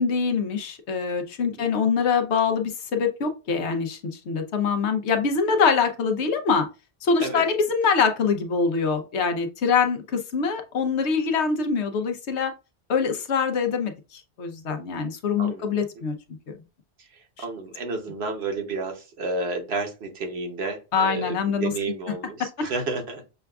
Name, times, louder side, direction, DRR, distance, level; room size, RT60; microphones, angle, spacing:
voice 1, 0.0-6.7 7.0-12.5 12.9-16.1 20.9-21.7, left 5 dB, 85° left, 6 dB, 1.0 m, -24 dB
voice 2, 17.0-23.2, right 3 dB, 70° right, 3 dB, 1.2 m, -31 dB
6.7 x 2.3 x 2.3 m, 0.29 s
omnidirectional pair, 1.1 m